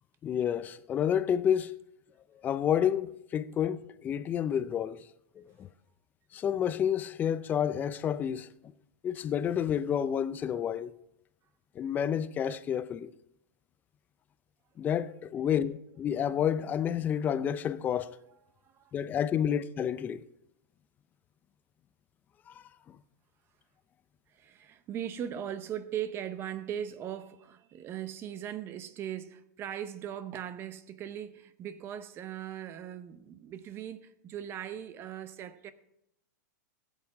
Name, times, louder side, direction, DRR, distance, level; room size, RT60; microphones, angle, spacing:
voice 1, 0.2-1.8 2.4-5.0 5.4-5.7 6.3-8.5 9.0-10.9 11.8-13.1 14.8-18.1 18.9-20.2 22.5-22.6, left 9 dB, 15° left, 0.4 m, -29 dB
voice 2, 18.6-19.1 19.4-19.5 24.3-35.7, right 10 dB, 25° right, 0.7 m, -39 dB
15.5 x 8.1 x 4.7 m
supercardioid pair, 150°, 10 cm